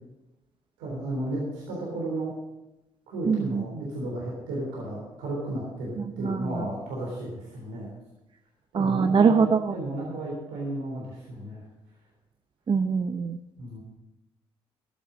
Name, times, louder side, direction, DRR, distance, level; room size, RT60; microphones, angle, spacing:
voice 1, 0.8-2.3 3.1-7.9 8.7-11.6 13.6-13.8, right 1 dB, 80° right, -4 dB, 3.7 m, -33 dB
voice 2, 3.3-3.6 6.2-6.4 8.7-9.6 12.7-13.4, right 5 dB, 35° right, 10 dB, 0.7 m, -22 dB
12.5 x 10.5 x 6.2 m, 0.98 s
hypercardioid pair, 50°, 14 cm